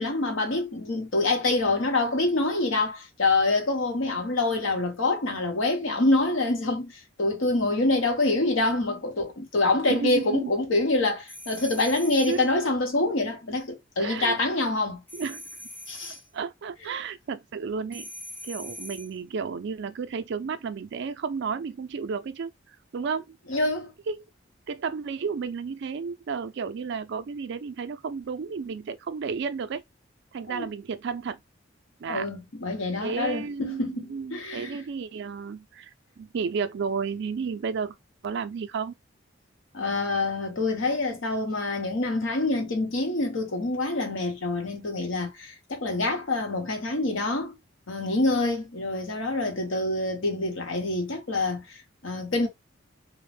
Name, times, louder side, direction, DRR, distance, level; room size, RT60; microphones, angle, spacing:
voice 1, 0.0-15.0 15.9-16.2 23.5-23.9 30.5-30.7 32.1-34.8 39.7-47.6 47.9-52.5, left 2 dB, 80° left, 0.8 m, -26 dB
voice 2, 9.9-10.5 12.3-12.5 14.0-14.4 15.1-15.4 16.3-18.1 18.4-22.5 22.9-23.4 24.1-24.2 24.7-29.8 30.3-31.4 32.0-32.3 33.0-35.9 36.2-38.0 38.2-38.9, right 5 dB, 60° right, 0.4 m, -32 dB
sound 1, 11.3-12.5 15.1-16.3 17.9-19.2, left 1 dB, 10° left, 0.5 m, -42 dB
2.4 x 2.1 x 3.2 m
head